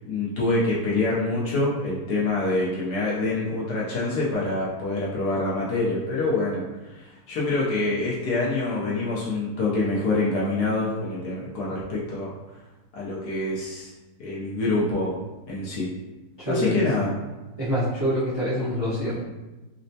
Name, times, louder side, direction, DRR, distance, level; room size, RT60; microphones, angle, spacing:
voice 1, 0.1-12.3 12.9-13.9 14.2-15.2 15.5-15.9 16.5-17.1, left 2 dB, 65° left, -6 dB, 1.1 m, -26 dB
voice 2, 16.4-16.8 17.6-19.1, equal, 25° right, -12 dB, 0.6 m, -25 dB
4.1 x 2.1 x 2.7 m, 1.1 s
omnidirectional pair, 2.0 m